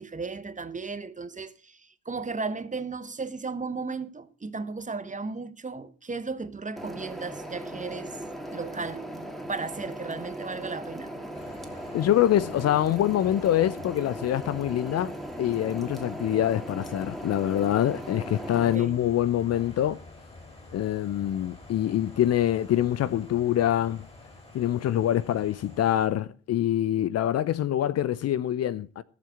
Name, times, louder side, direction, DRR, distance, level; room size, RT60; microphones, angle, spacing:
voice 1, 0.0-8.2 8.5-11.1 18.5-19.0, right 4 dB, 20° right, 1.2 m, -35 dB
sound 1, 6.8-18.8, right 1 dB, ahead, 2.8 m, -38 dB
sound 2, 11.3-26.1, left 2 dB, 15° left, 6.1 m, -49 dB
voice 2, 11.9-20.0 20.7-24.0 24.5-29.0, left 11 dB, 45° left, 0.8 m, -25 dB
16.5 x 7.5 x 5.9 m
figure-of-eight pair, 40°, 34 cm